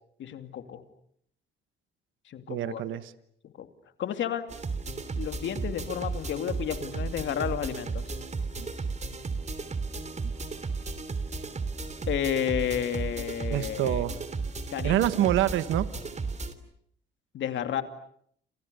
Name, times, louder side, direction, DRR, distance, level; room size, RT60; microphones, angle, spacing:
voice 1, 0.2-0.8 2.3-2.8 3.4-3.7 4.0-4.5 5.2-8.1 12.1-14.0 14.7-15.1 17.3-17.8, left 9 dB, 70° left, 8 dB, 2.6 m, -31 dB
voice 2, 2.5-3.1 13.5-14.2 14.8-15.9, right 13 dB, 85° right, 13 dB, 1.2 m, -26 dB
sound 1, 4.5-16.5, right 4 dB, 35° right, 3.1 m, -34 dB
29.0 x 28.5 x 6.9 m, 0.68 s
cardioid pair, 90°, 20 cm